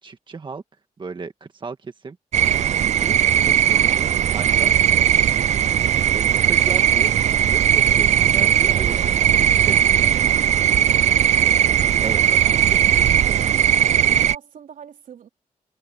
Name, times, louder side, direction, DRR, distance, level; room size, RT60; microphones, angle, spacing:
voice 1, 0.0-0.6 1.0-2.2 2.9-3.2 3.5-4.8 5.6-9.1 9.4-10.1 12.0-13.0, right 4 dB, 35° right, 1.6 m, -35 dB
sound 1, 2.3-14.4, right 10 dB, 60° right, 0.4 m, -18 dB
voice 2, 10.0-10.9 12.5-12.8 14.1-15.3, right 8 dB, 85° right, 3.6 m, -42 dB
wide cardioid pair, 115°, 13 cm